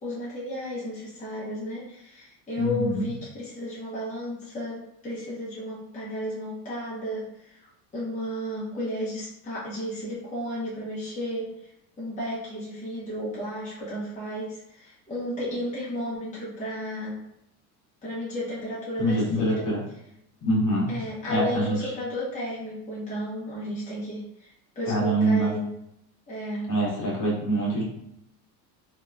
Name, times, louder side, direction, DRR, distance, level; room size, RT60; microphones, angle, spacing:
voice 1, 0.0-11.7 12.0-17.2 18.0-19.7 20.9-25.7 26.3-26.7, equal, 15° left, -8 dB, 0.9 m, -33 dB
voice 2, 2.6-3.0 19.0-19.8 20.4-20.9 21.3-21.9 24.9-25.5 26.7-27.8, right 1 dB, 40° left, -5 dB, 1.3 m, -24 dB
2.7 x 2.5 x 2.2 m, 0.78 s
supercardioid pair, 105°, 46 cm